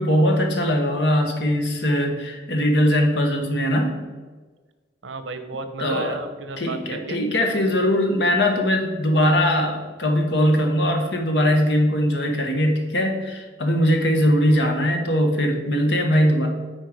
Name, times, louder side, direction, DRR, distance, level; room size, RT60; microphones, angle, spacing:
voice 1, 0.0-4.0 5.8-6.2 6.6-16.5, equal, 65° left, 3 dB, 1.3 m, -20 dB
voice 2, 5.0-7.2, right 3 dB, 85° right, 9 dB, 0.8 m, -33 dB
8.9 x 4.5 x 4.8 m, 1.3 s
head